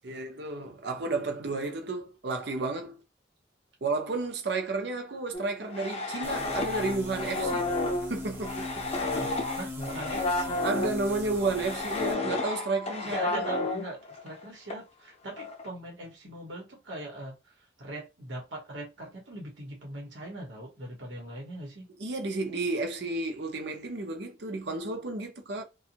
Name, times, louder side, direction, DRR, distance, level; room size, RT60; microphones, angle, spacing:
voice 1, 0.0-3.0 3.8-7.7 8.1-8.9 10.6-13.4 22.0-25.6, right 3 dB, 65° right, 0.7 m, -32 dB
sound 1, 5.3-11.0 11.5-14.4 14.7-14.8 15.4-15.7, left 2 dB, 35° left, 0.6 m, -31 dB
sound 2, 6.2-12.1, left 2 dB, 15° right, 0.7 m, -40 dB
sound 3, 7.4-7.5 8.4-8.6 9.4-9.5 10.4-10.5 11.4-11.5 12.4-12.9, right 3 dB, 45° right, 1.0 m, -45 dB
voice 2, 9.5-10.6 13.0-21.9, right 1 dB, 85° right, 1.1 m, -41 dB
2.6 x 2.3 x 2.8 m
head